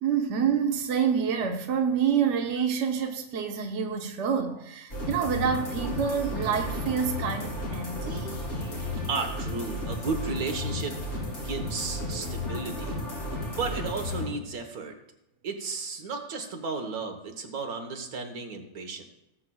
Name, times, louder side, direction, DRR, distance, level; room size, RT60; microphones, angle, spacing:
voice 1, 0.0-8.4, right 7 dB, 55° right, 3 dB, 1.1 m, -27 dB
sound 1, 4.9-14.3, left 1 dB, 50° left, 3.6 m, -33 dB
voice 2, 9.1-13.0 13.5-15.0 15.4-19.0, right 4 dB, 80° right, 5 dB, 1.7 m, -34 dB
18.5 x 7.7 x 2.3 m, 0.83 s
omnidirectional pair, 1.5 m